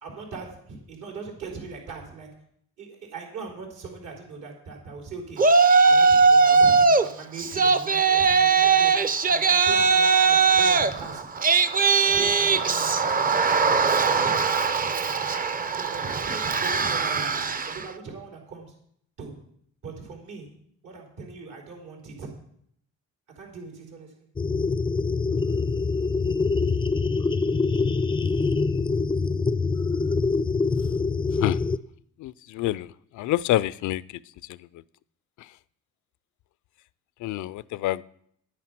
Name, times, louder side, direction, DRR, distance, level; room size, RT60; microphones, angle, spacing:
voice 1, 0.0-2.3 2.8-5.4 5.8-8.9 9.3-11.3 12.0-14.4 14.8-15.3 15.7-17.3 17.7-18.7 19.2-19.4 19.8-20.5 20.8-22.3 23.4-24.3, right 4 dB, 75° right, 1 dB, 4.0 m, -40 dB
Yell, 5.4-7.0 7.4-17.8, right 5 dB, 30° right, 0.6 m, -20 dB
sound 1, 24.4-31.8, left 4 dB, 15° left, 0.4 m, -24 dB
voice 2, 32.2-32.9 33.2-34.0 37.2-38.0, left 15 dB, 75° left, 19 dB, 0.5 m, -26 dB
9.7 x 9.5 x 6.0 m, 0.67 s
cardioid pair, 90°, 30 cm